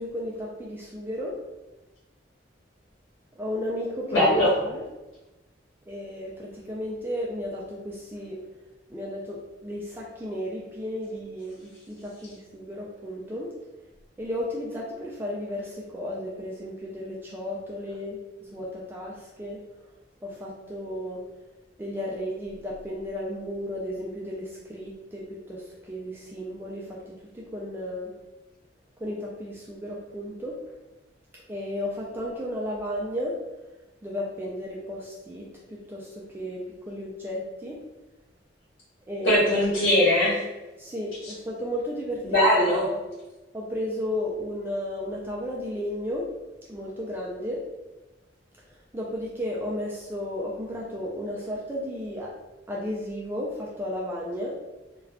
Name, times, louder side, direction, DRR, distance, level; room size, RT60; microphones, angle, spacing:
voice 1, 0.0-1.4 3.4-4.3 4.6-4.8 5.9-8.4 8.9-13.5 14.2-19.6 20.2-21.2 21.8-28.1 29.0-30.6 31.5-33.4 34.0-37.8 39.1-39.4 40.8-42.4 42.8-43.0 43.5-46.3 46.7-47.6 48.7-52.3 52.7-54.6, left 1 dB, 10° right, -4 dB, 0.3 m, -34 dB
voice 2, 4.1-4.5 39.2-40.4 42.2-42.8, left 1 dB, 85° left, -9 dB, 1.1 m, -20 dB
2.3 x 2.2 x 3.4 m, 1.1 s
head